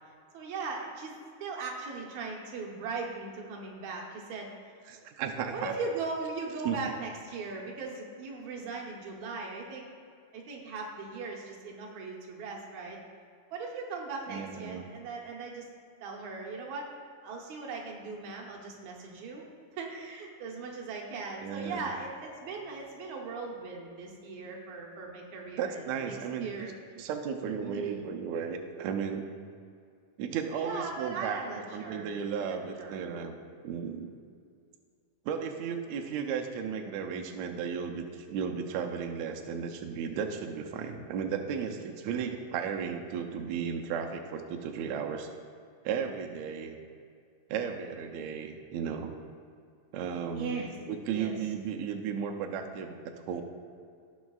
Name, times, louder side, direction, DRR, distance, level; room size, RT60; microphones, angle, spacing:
voice 1, 0.3-1.2 1.4-4.5 5.5-9.9 10.3-13.0 13.5-15.7 16.0-16.9 17.2-19.5 19.7-26.7 27.6-28.1 30.6-33.1 41.7-41.8 50.4-50.7 51.1-51.3, right 4 dB, 65° right, -1 dB, 2.2 m, -39 dB
voice 2, 4.9-5.7 6.6-6.8 14.3-14.8 21.4-21.8 25.6-26.7 27.0-29.3 30.2-31.4 31.7-33.4 33.6-34.1 35.2-45.3 45.8-46.8 47.5-49.2 49.9-53.0 53.3-53.4, right 7 dB, 90° right, 3 dB, 1.6 m, -34 dB
17.5 x 6.3 x 2.4 m, 2.2 s
omnidirectional pair, 3.9 m